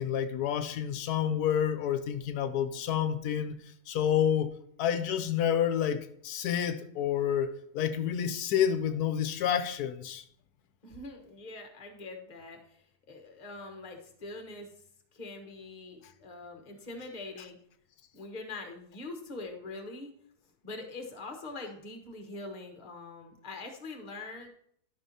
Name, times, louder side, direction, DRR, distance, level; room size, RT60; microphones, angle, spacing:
voice 1, 0.0-3.6 3.9-4.5 4.8-7.5 7.7-10.2, left 9 dB, 80° left, 1.1 m, -29 dB
voice 2, 10.8-14.7 15.1-17.6 18.1-20.1 20.6-24.5, left 2 dB, 30° left, 1.2 m, -43 dB
12.0 x 5.9 x 2.8 m
omnidirectional pair, 1.6 m